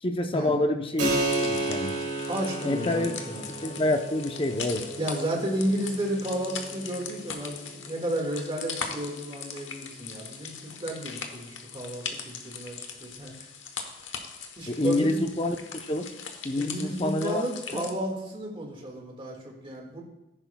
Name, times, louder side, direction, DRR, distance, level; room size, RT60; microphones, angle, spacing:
voice 1, 0.0-2.0 2.6-3.1 3.6-4.9 14.7-15.6 15.9-16.1 16.4-17.5 17.7-17.8, left 1 dB, 30° left, 5 dB, 0.7 m, -27 dB
sound 1, 1.0-17.9, left 6 dB, 90° left, 1.1 m, -40 dB
Keyboard (musical), 1.0-11.2, right 2 dB, 85° right, 2.7 m, -34 dB
voice 2, 2.3-3.4 3.7-3.9 5.0-13.3 14.6-15.3 16.6-20.0, right 1 dB, 30° right, 0 dB, 1.8 m, -32 dB
14.5 x 10.5 x 2.3 m, 0.96 s
head